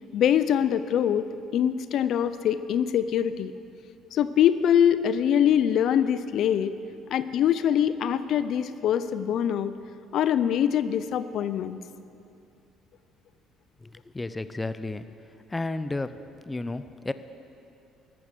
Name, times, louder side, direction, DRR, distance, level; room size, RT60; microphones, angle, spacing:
voice 1, 0.1-1.3 1.5-3.5 4.1-6.7 7.1-9.7 10.1-11.8, left 9 dB, 65° left, 13 dB, 0.5 m, -23 dB
voice 2, 13.8-15.2 15.5-17.1, left 2 dB, 15° left, 12 dB, 0.6 m, -33 dB
14.0 x 12.5 x 6.7 m, 2.6 s
cardioid pair, 90°, 0 cm